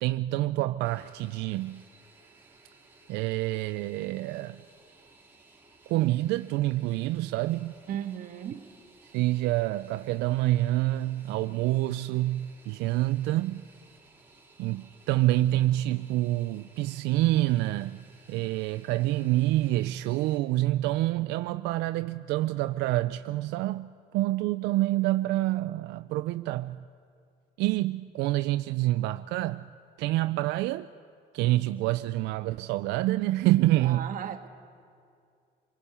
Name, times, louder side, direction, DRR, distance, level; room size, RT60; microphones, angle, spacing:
voice 1, 0.0-1.8 3.1-4.6 5.9-7.8 9.1-13.6 14.6-26.8 27.6-29.7 30.0-30.9 31.3-34.1, right 16 dB, 90° right, 0.4 m, -27 dB
Fixed-wing aircraft airplane, 0.8-20.4, right 3 dB, 10° right, 3.0 m, -58 dB
voice 2, 7.9-8.7 33.8-34.5, right 10 dB, 55° right, 1.5 m, -35 dB
27.0 x 19.5 x 5.6 m
cardioid pair, 110°, 17 cm